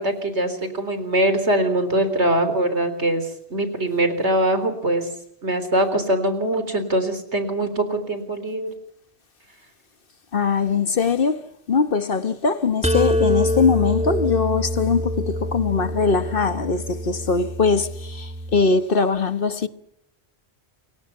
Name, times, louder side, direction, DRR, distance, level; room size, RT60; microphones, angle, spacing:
voice 1, 0.0-5.1 5.4-8.7, right 1 dB, 85° right, 4.1 m, -22 dB
voice 2, 10.3-19.7, left 5 dB, 55° left, 1.4 m, -21 dB
sound 1, 12.8-18.6, equal, 5° right, 1.8 m, -25 dB
28.5 x 23.5 x 5.7 m
omnidirectional pair, 1.1 m